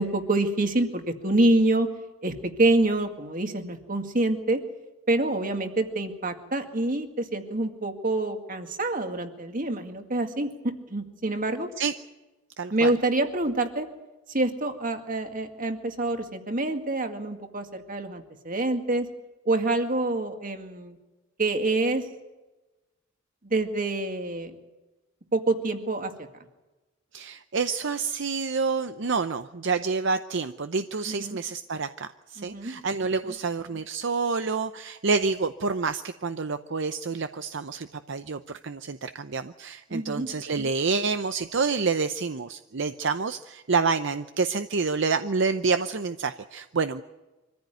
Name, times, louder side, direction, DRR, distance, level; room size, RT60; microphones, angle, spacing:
voice 1, 0.0-1.9 2.2-4.6 5.1-11.7 12.7-13.9 14.3-19.1 19.5-21.0 21.4-22.0 23.4-24.5 25.3-26.1 31.1-31.4 32.4-32.8 33.3-33.4 39.9-40.3, right 2 dB, 45° right, 6 dB, 2.1 m, -26 dB
voice 2, 12.6-12.9 27.1-47.0, right 4 dB, 65° right, 10 dB, 0.7 m, -28 dB
24.5 x 15.0 x 9.3 m, 1.1 s
head